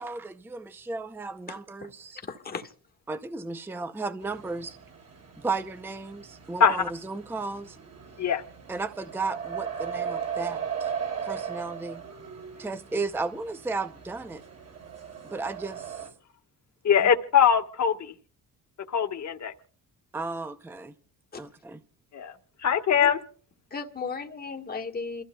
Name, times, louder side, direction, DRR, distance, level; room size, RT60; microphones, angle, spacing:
voice 1, 0.0-2.2 3.1-4.7 5.4-7.8 8.7-10.9 11.2-12.0 12.6-14.4 15.3-16.0 17.0-17.1 20.1-20.9 21.4-21.8, right 3 dB, 5° right, 0.6 m, -34 dB
voice 2, 1.5-1.9 2.3-2.7 21.3-21.4 23.0-23.1 23.7-25.2, left 4 dB, 25° left, 1.6 m, -36 dB
sound 1, 4.2-16.1, right 7 dB, 40° right, 4.6 m, -38 dB
voice 3, 16.8-18.1 18.9-19.5 22.1-22.3 22.6-23.2, left 7 dB, 45° left, 1.6 m, -22 dB
28.5 x 15.0 x 2.3 m
cardioid pair, 155°, 38 cm